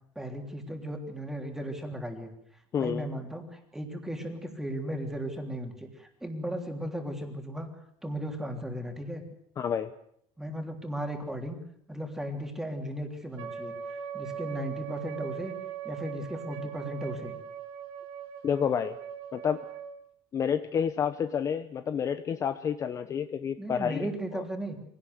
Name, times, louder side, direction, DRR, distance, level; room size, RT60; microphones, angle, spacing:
voice 1, 0.2-2.3 2.8-7.7 8.0-9.2 10.4-11.6 11.9-13.7 14.1-15.6 15.8-17.4 23.6-24.8, equal, 5° right, 4 dB, 3.3 m, -36 dB
voice 2, 2.7-3.1 9.6-9.9 18.4-19.0 19.3-19.6 20.3-24.1, left 7 dB, 30° left, 10 dB, 0.9 m, -29 dB
Wind instrument woodwind instrument, 13.4-19.9, right 9 dB, 80° right, 4.0 m, -40 dB
24.0 x 17.5 x 8.0 m, 0.70 s
cardioid pair, 155°, 11 cm